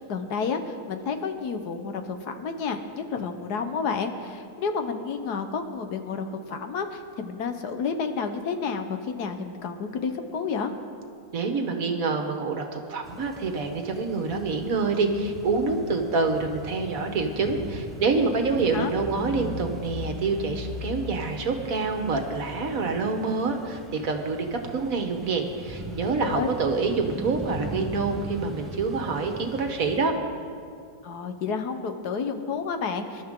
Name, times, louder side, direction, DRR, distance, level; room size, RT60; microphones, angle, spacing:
voice 1, 0.0-10.7 18.7-18.9 26.0-26.5 31.0-33.2, left 5 dB, 85° left, 7 dB, 1.6 m, -30 dB
voice 2, 11.3-30.1, right 4 dB, 60° right, 4 dB, 1.7 m, -27 dB
sound 1, 13.0-30.1, left 1 dB, ahead, 1.8 m, -39 dB
25.0 x 12.0 x 3.8 m, 2.4 s
omnidirectional pair, 1.7 m